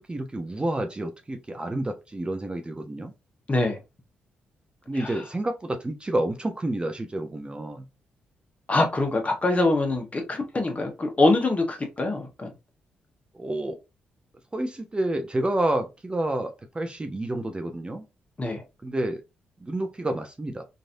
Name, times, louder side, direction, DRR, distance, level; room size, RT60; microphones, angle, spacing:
voice 1, 0.1-3.1 4.9-7.8 13.3-13.8 14.5-18.0 18.8-19.2 19.6-20.6, right 1 dB, 25° right, 0.6 m, -29 dB
voice 2, 3.5-3.8 4.9-5.2 8.7-12.5 18.4-18.6, left 2 dB, 30° left, 1.1 m, -24 dB
3.1 x 2.6 x 2.5 m
hypercardioid pair, 45°, 4 cm